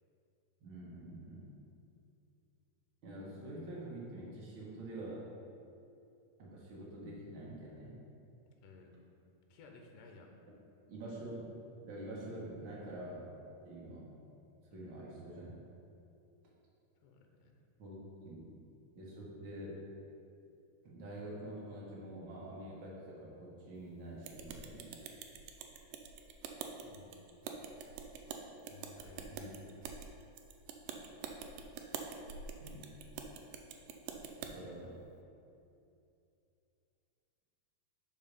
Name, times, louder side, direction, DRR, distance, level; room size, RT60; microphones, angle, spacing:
voice 1, 0.6-1.5 3.0-5.3 6.4-7.9 10.9-11.5 11.8-13.3 13.6-14.1 14.7-15.5 17.8-18.0 18.2-18.5 18.9-19.8 20.8-24.9 29.3-29.7 32.6-33.0 34.5-35.0, right 1 dB, 55° right, -5 dB, 1.4 m, -46 dB
voice 2, 8.6-9.0 9.5-10.4 14.7-14.9 17.0-17.6 26.8-27.2 28.7-29.6, left 4 dB, 80° left, 2 dB, 2.2 m, -57 dB
sound 1, 24.2-34.5, right 6 dB, 80° right, 2.2 m, -46 dB
5.6 x 4.9 x 5.3 m, 2.7 s
omnidirectional pair, 3.9 m